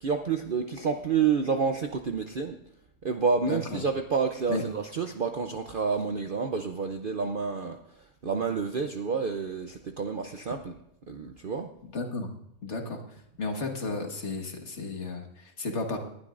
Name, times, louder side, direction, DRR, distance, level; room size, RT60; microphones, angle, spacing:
voice 1, 0.0-2.6 3.0-10.8 11.1-11.7, right 5 dB, 50° right, 5 dB, 0.7 m, -29 dB
voice 2, 3.5-3.8 4.5-4.6 11.9-12.3 12.6-13.0 13.4-16.0, left 3 dB, 50° left, 3 dB, 1.8 m, -33 dB
19.5 x 11.5 x 2.5 m, 0.78 s
omnidirectional pair, 1.6 m